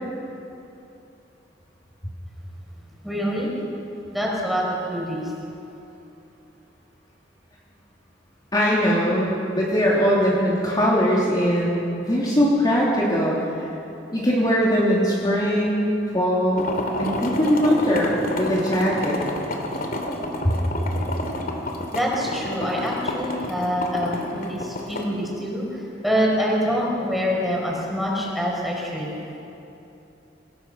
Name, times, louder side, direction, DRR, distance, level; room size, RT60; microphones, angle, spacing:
voice 1, 3.0-3.5 4.1-5.2 21.9-25.6 26.0-29.1, equal, ahead, -3 dB, 5.5 m, -25 dB
voice 2, 8.5-11.8 12.1-13.4 14.1-16.7 17.0-19.2 20.4-20.5, equal, 25° left, -6 dB, 3.2 m, -21 dB
sound 1, 16.6-25.1, left 1 dB, 50° left, 2.8 m, -29 dB
26.5 x 19.0 x 6.4 m, 2.9 s
head